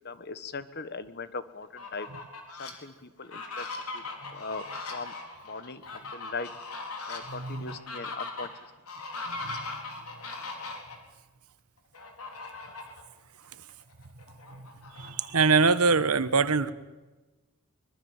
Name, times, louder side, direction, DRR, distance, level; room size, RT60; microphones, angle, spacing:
voice 1, 0.0-2.1 2.6-3.7 3.9-4.0 4.3-4.6 4.9-5.1 5.4-6.5 7.1-8.5, left 4 dB, 50° left, 13 dB, 1.3 m, -39 dB
Fowl, 1.6-2.7 3.2-11.0 11.9-13.0 13.4-13.5 13.9-15.6, left 3 dB, 90° left, 4.3 m, -40 dB
voice 2, 7.3-7.8 9.3-9.6 14.5-14.7 15.0-16.7, right 4 dB, 85° right, 14 dB, 1.3 m, -24 dB
24.0 x 22.0 x 7.3 m, 1.2 s
head